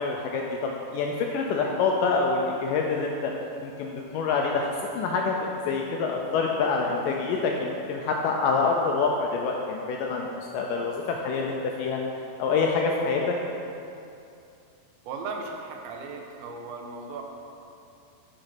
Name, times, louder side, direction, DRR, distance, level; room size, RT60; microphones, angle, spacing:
voice 1, 0.0-3.3 3.6-10.3 10.5-12.0 12.4-13.4, left 4 dB, 80° left, 0 dB, 1.9 m, -26 dB
voice 2, 15.0-17.2, right 4 dB, 85° right, 2 dB, 2.5 m, -36 dB
6.4 x 6.1 x 5.8 m, 2.6 s
omnidirectional pair, 4.3 m